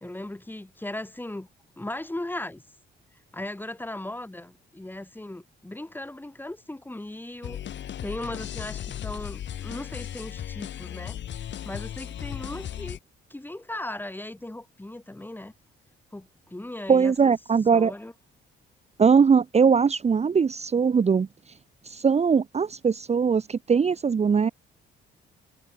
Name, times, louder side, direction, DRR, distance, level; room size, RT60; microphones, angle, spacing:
voice 1, 0.0-1.5 1.8-2.6 3.3-7.6 8.0-11.2 11.7-13.0 13.3-15.5 16.1-17.3 17.7-18.1, left 1 dB, 10° left, 2.6 m, -37 dB
sound 1, 7.4-13.0, left 10 dB, 65° left, 2.3 m, -36 dB
voice 2, 16.9-17.9 19.0-21.3 21.9-24.5, right 6 dB, 35° right, 1.0 m, -21 dB
cardioid pair, 90°, 20 cm